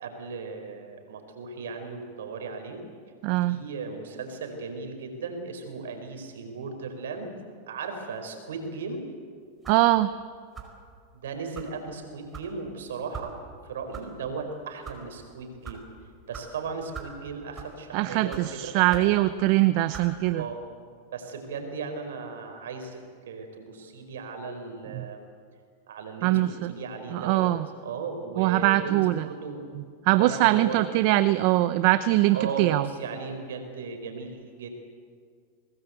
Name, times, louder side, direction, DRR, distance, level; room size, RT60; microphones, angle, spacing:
voice 1, 0.0-2.8 3.5-7.3 7.7-9.0 11.1-13.3 13.6-15.8 16.3-19.2 20.3-20.6 21.1-25.3 25.9-27.5 27.8-29.7 30.1-30.9 32.3-34.7, right 4 dB, 85° right, 5 dB, 4.8 m, -36 dB
voice 2, 3.2-3.6 9.7-10.1 17.9-20.4 24.9-25.1 26.2-26.7 27.1-27.7 28.4-29.3 29.7-32.9, right 17 dB, 55° right, 13 dB, 0.8 m, -22 dB
sound 1, 9.6-9.9 10.5-10.8 11.5-11.7 12.3-12.5 13.1-13.3 13.9-14.1 14.7-15.0 15.6-15.8 16.3-16.5 16.9-17.2 17.5-17.8 18.3-18.4 18.9-19.1 19.9-20.1, right 7 dB, 20° right, 4.8 m, -40 dB
25.0 x 19.5 x 8.2 m, 2.1 s
hypercardioid pair, 120°, 0 cm